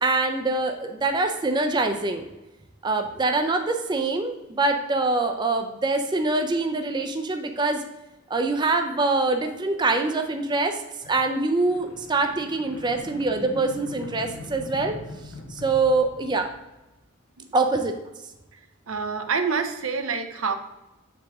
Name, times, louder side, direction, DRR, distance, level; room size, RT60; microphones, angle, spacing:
voice 1, 0.0-2.3 2.8-7.8 8.3-10.8 11.1-15.0 15.5-16.5 17.5-17.9, right 3 dB, 20° right, 5 dB, 0.5 m, -24 dB
sound 1, 11.0-16.9, left 2 dB, 75° left, 0.9 m, -42 dB
voice 2, 18.9-20.5, right 5 dB, 80° right, 7 dB, 0.7 m, -27 dB
7.4 x 4.8 x 3.5 m, 1.0 s
head